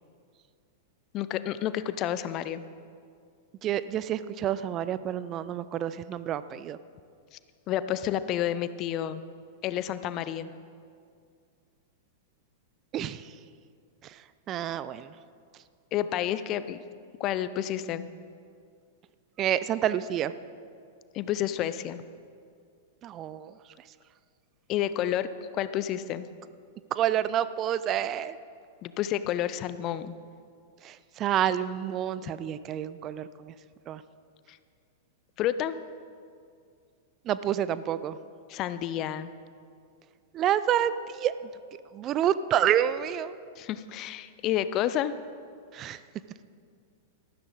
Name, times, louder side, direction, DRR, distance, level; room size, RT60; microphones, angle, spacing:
voice 1, 1.1-2.6 7.7-9.2 9.6-10.5 15.9-16.8 17.2-18.1 21.1-22.0 24.7-25.3 25.5-26.3 28.8-30.1 34.5-34.6 35.4-35.8 38.5-39.3 43.6-45.1, left 11 dB, 35° left, 14 dB, 0.5 m, -30 dB
voice 2, 3.6-6.8 12.9-13.3 14.0-15.1 19.4-20.3 23.0-23.5 26.9-28.4 30.8-33.5 33.9-34.0 37.3-38.2 40.3-41.3 41.9-43.3 45.7-46.0, right 10 dB, 30° right, 15 dB, 0.4 m, -28 dB
14.0 x 12.5 x 4.0 m, 2.3 s
figure-of-eight pair, 95°, 0 cm